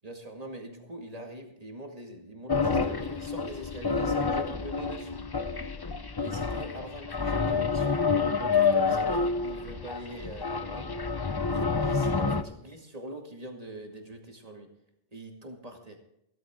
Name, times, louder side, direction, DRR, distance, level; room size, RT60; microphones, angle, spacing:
voice 1, 0.0-5.2 6.2-8.0 8.3-10.9 11.5-14.7 15.1-16.0, right 1 dB, 30° right, 2 dB, 2.2 m, -43 dB
sound 1, 2.5-12.4, left 4 dB, 30° left, 0.4 m, -28 dB
15.0 x 13.5 x 3.7 m, 0.79 s
omnidirectional pair, 1.4 m